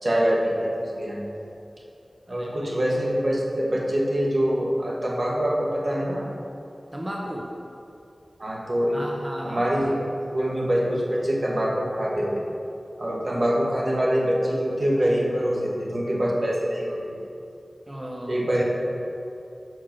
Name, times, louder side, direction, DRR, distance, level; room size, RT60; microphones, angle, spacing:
voice 1, 0.0-1.2 2.3-6.3 8.4-9.0 9.4-10.0 10.3-12.4 13.0-17.1 18.3-18.6, equal, 55° right, -3 dB, 1.3 m, -24 dB
voice 2, 2.3-2.8 6.9-7.5 8.9-9.7 17.9-18.4, equal, 20° right, -2 dB, 0.7 m, -34 dB
6.1 x 4.7 x 6.0 m, 2.7 s
wide cardioid pair, 60°, 0 cm